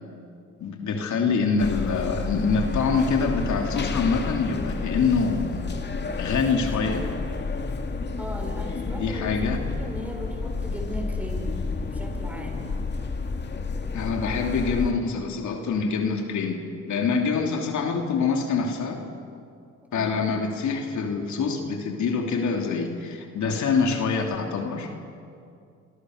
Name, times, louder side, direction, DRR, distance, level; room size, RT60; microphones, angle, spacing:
voice 1, 0.6-5.6 6.2-7.1 8.9-9.6 13.9-16.6 16.9-19.0 19.9-25.0, left 5 dB, 70° left, 2 dB, 3.1 m, -25 dB
sound 1, 1.6-14.9, left 4 dB, 35° left, 2.2 m, -30 dB
voice 2, 8.2-11.6 11.9-12.7 19.9-20.2, equal, 5° right, 1 dB, 6.5 m, -37 dB
28.0 x 26.0 x 6.6 m, 2.4 s
cardioid pair, 90°, 30 cm